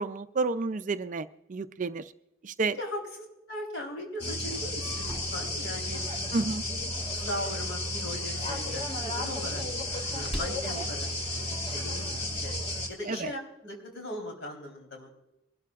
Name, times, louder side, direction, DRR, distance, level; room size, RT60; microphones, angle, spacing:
voice 1, 0.0-2.1 2.4-2.8 6.3-6.6 13.1-13.3, right 3 dB, 35° right, 12 dB, 0.4 m, -30 dB
voice 2, 2.8-6.8 7.1-9.6 10.1-12.5 12.9-15.1, left 1 dB, 60° left, 2 dB, 3.7 m, -39 dB
sound 1, 4.2-12.9, left 1 dB, 30° left, 2.0 m, -33 dB
sound 2, 11.2-12.5, equal, ahead, 2.6 m, -47 dB
23.5 x 12.0 x 2.4 m, 0.90 s
head